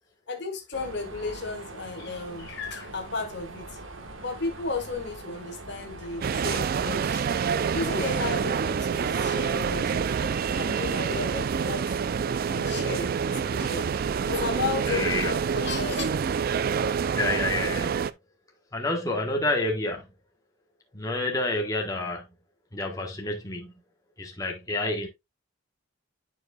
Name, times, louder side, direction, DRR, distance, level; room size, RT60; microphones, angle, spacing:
voice 1, 0.3-3.7 4.2-7.3 7.7-10.1 10.6-12.0 12.4-13.9 14.2-16.0, left 4 dB, 55° left, 1.3 m, -34 dB
Mechanisms, 0.7-11.8, right 2 dB, 75° right, 1.3 m, -43 dB
sound 1, 6.2-18.1, right 6 dB, 45° right, 0.3 m, -27 dB
voice 2, 14.9-15.3 17.2-18.1 18.7-20.1 20.9-22.2 22.7-23.7 24.2-25.1, left 2 dB, 15° left, 1.1 m, -29 dB
10.5 x 4.7 x 2.3 m
head